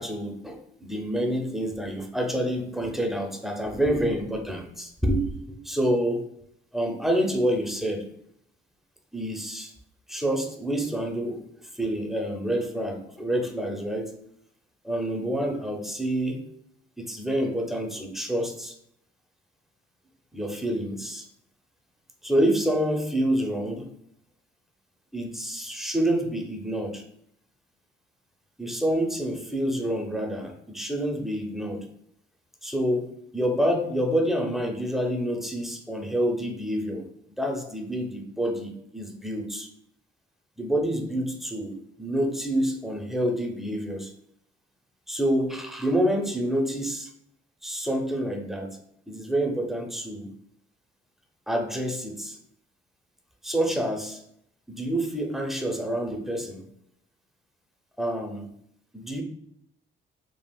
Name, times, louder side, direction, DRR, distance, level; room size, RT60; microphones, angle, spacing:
voice 1, 0.0-6.3 6.7-8.1 9.1-9.7 10.1-11.4 11.7-14.1 14.8-16.4 17.0-18.7 20.3-21.3 22.2-23.9 25.1-27.0 28.6-31.8 32.6-37.1 37.4-39.7 40.6-44.1 45.1-47.1 47.6-48.7 49.1-50.3 51.5-52.4 53.4-54.2 54.7-56.6 58.0-58.5 58.9-59.2, right 1 dB, ahead, 2 dB, 0.6 m, -27 dB
3.5 x 2.3 x 2.3 m, 0.71 s
cardioid pair, 90°, 20 cm